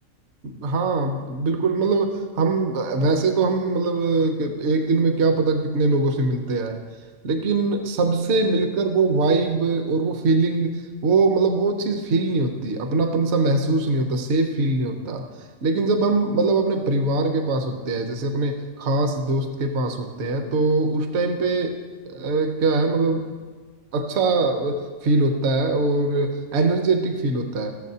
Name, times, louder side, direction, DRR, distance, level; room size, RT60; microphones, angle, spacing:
voice 1, 0.4-6.8 7.2-15.3 15.6-21.8 22.1-23.3 23.9-27.7, right 3 dB, 60° right, 5 dB, 1.0 m, -22 dB
15.0 x 7.0 x 2.8 m, 1.5 s
omnidirectional pair, 1.4 m